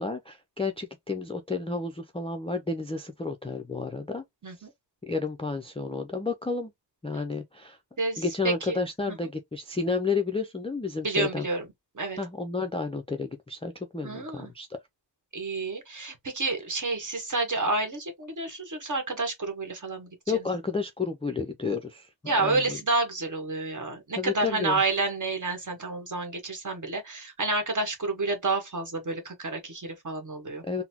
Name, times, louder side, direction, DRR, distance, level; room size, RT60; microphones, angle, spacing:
voice 1, 0.0-4.2 5.0-6.7 7.0-7.8 8.2-11.4 12.2-14.7 20.3-22.1 22.4-22.8 24.2-24.8 30.6-30.8, left 4 dB, 15° left, 0.3 m, -31 dB
voice 2, 8.0-8.8 9.1-9.3 11.0-11.7 11.9-12.2 14.0-14.5 15.3-20.4 22.3-30.6, right 3 dB, 40° right, 1.2 m, -29 dB
3.9 x 2.0 x 2.7 m
wide cardioid pair, 155°, 44 cm